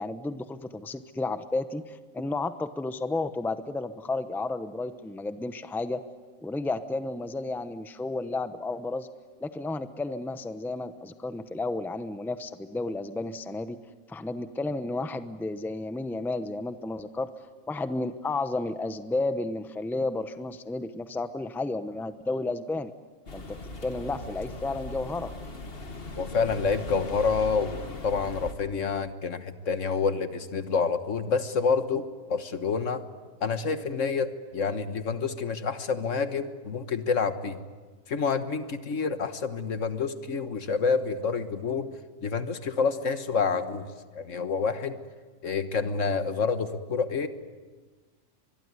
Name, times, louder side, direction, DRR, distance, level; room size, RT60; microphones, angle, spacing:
voice 1, 0.0-6.0 6.4-9.1 9.4-13.8 14.1-17.3 17.7-22.9 23.3-25.3, left 2 dB, ahead, 11 dB, 0.8 m, -32 dB
sound 1, 23.3-28.5, left 2 dB, 45° left, 2.0 m, -39 dB
voice 2, 26.2-33.0 33.4-37.6 38.1-41.9 42.2-45.0 45.4-47.3, left 5 dB, 70° left, 10 dB, 1.6 m, -28 dB
24.0 x 22.5 x 9.8 m, 1.4 s
omnidirectional pair, 1.4 m